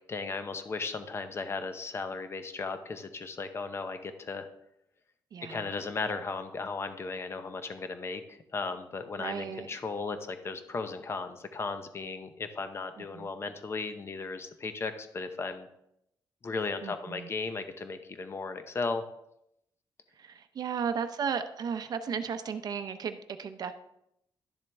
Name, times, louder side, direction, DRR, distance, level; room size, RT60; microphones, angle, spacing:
voice 1, 0.1-4.5 5.5-15.7 16.4-19.0, left 4 dB, 30° left, 8 dB, 0.8 m, -36 dB
voice 2, 5.3-5.8 9.2-9.7 13.0-13.3 16.8-17.3 20.1-23.7, right 6 dB, 50° right, 9 dB, 0.7 m, -35 dB
12.0 x 7.3 x 3.4 m, 0.79 s
wide cardioid pair, 150°, 8 cm